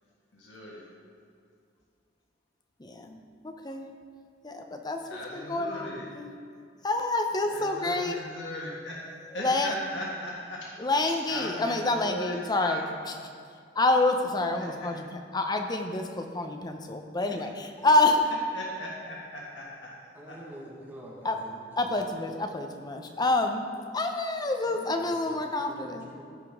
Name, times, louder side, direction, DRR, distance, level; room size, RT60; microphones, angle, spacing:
voice 1, 0.3-0.8 5.1-6.1 7.5-8.9 9.3-10.6 11.3-12.9 18.5-19.9 20.3-20.4 24.6-25.0, equal, 85° left, -4 dB, 1.5 m, -38 dB
voice 2, 2.8-3.2 3.4-3.9 4.4-5.0 5.3-6.3 6.8-8.2 9.3-9.7 10.8-13.2 13.7-18.2 21.2-21.4 21.8-23.7 23.9-26.1, left 2 dB, 25° left, 4 dB, 0.7 m, -27 dB
voice 3, 20.1-21.9 25.0-26.2, equal, 10° right, -6 dB, 1.4 m, -46 dB
15.0 x 5.2 x 3.6 m, 2.2 s
head